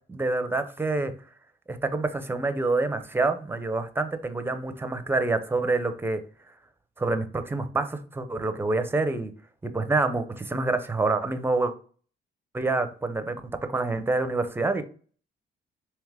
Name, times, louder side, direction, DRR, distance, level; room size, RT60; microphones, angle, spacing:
voice 1, 0.1-1.1 1.7-6.2 7.0-9.3 9.6-11.7 12.5-13.4 13.7-14.8, right 3 dB, 10° right, 9 dB, 0.5 m, -27 dB
3.5 x 2.9 x 3.3 m, 0.42 s
cardioid pair, 90°, 20 cm